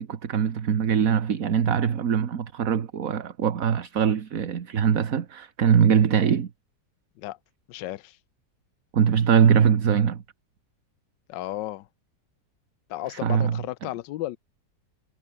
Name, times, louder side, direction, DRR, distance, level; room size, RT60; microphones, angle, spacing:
voice 1, 0.0-6.5 8.9-10.2 13.1-13.6, right 7 dB, 55° right, 1.7 m, -22 dB
voice 2, 7.7-8.2 11.3-11.9 12.9-14.4, left 15 dB, 85° left, 1.3 m, -34 dB
omnidirectional pair, 1.9 m